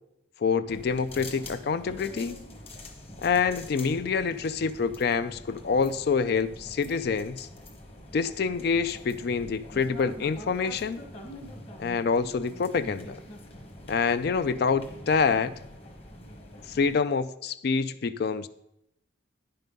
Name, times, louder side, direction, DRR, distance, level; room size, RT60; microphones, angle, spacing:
voice 1, 0.4-2.4 3.2-7.5 8.1-11.0 11.8-13.2 13.9-15.5 16.7-18.5, left 5 dB, 50° left, 14 dB, 0.4 m, -26 dB
sound 1, 0.7-17.0, left 1 dB, 30° left, 1.2 m, -45 dB
10.0 x 5.7 x 5.3 m, 0.82 s
head